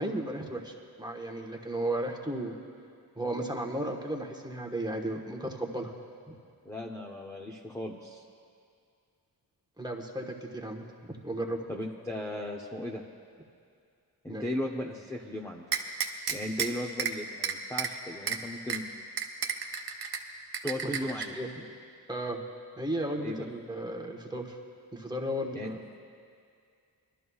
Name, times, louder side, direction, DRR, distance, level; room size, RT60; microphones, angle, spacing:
voice 1, 0.0-2.5 3.1-5.9 6.3-6.4 9.8-11.6 14.3-14.4 20.8-21.5 22.1-22.4 22.8-24.6 24.9-25.8, right 1 dB, 10° right, 1 dB, 1.2 m, -34 dB
voice 2, 6.6-8.2 11.7-13.0 14.2-15.6 16.3-18.8 20.6-21.4 23.2-23.3 25.5-25.7, left 1 dB, 10° left, -2 dB, 0.8 m, -36 dB
sound 1, 15.7-16.7 17.0-17.1 17.4-17.9 18.3-18.4 18.7-18.8 19.2-20.2 20.5-21.2, right 7 dB, 65° right, 1.0 m, -30 dB
22.5 x 12.5 x 2.4 m, 2.3 s
cardioid pair, 85°, 40 cm